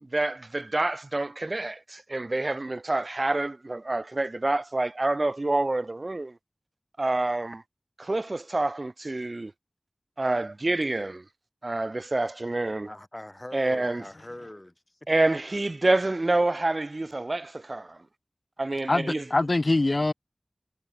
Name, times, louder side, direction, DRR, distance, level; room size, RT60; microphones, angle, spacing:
voice 1, 0.0-6.4 7.0-7.6 8.0-9.5 10.2-11.2 11.6-12.9 13.5-14.0 15.1-18.0 18.6-19.2, right 2 dB, 55° right, 0.8 m, -27 dB
voice 2, 12.8-15.1, left 1 dB, 25° left, 3.4 m, -43 dB
voice 3, 18.9-20.1, left 2 dB, 55° left, 0.4 m, -23 dB
wide cardioid pair, 45°, 0 cm